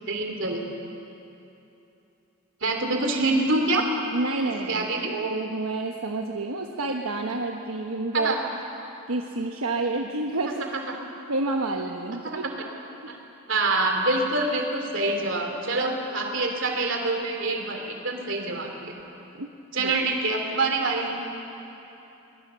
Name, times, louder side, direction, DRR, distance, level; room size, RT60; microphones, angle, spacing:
voice 1, 0.1-0.6 2.6-3.9 4.7-5.1 8.1-8.4 12.2-12.4 13.1-13.2 13.5-18.9 19.7-21.2, right 2 dB, 60° right, 3 dB, 3.1 m, -26 dB
voice 2, 4.1-8.4 9.1-10.7 11.3-12.4 19.3-19.5 19.8-19.9, right 2 dB, 80° right, 2 dB, 1.2 m, -29 dB
22.5 x 21.0 x 7.0 m, 2.9 s
head